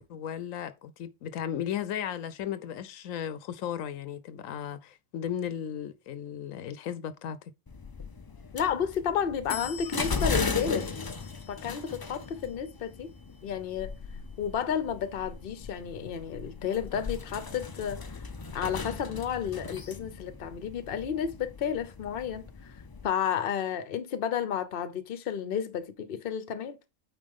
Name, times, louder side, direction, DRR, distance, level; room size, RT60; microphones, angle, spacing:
voice 1, 0.0-7.4, left 9 dB, 85° left, 1.1 m, -35 dB
sound 1, 7.7-23.1, left 4 dB, 35° left, 0.4 m, -37 dB
voice 2, 8.5-10.9 11.5-13.1 13.4-13.9 14.4-18.0 18.5-22.5 23.0-26.8, left 8 dB, 50° left, 0.9 m, -32 dB
8.7 x 4.6 x 3.6 m
omnidirectional pair, 1.4 m